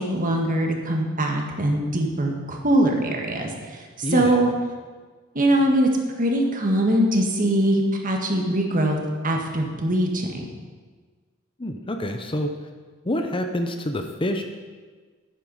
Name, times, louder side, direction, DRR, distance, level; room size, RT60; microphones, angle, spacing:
voice 1, 0.0-4.5 5.4-5.9 6.2-9.0 9.2-10.5, right 1 dB, 40° right, 2 dB, 1.8 m, -22 dB
voice 2, 4.0-4.5 11.6-12.5 13.0-14.4, left 1 dB, 25° left, 5 dB, 0.8 m, -27 dB
11.0 x 9.9 x 5.5 m, 1.5 s
head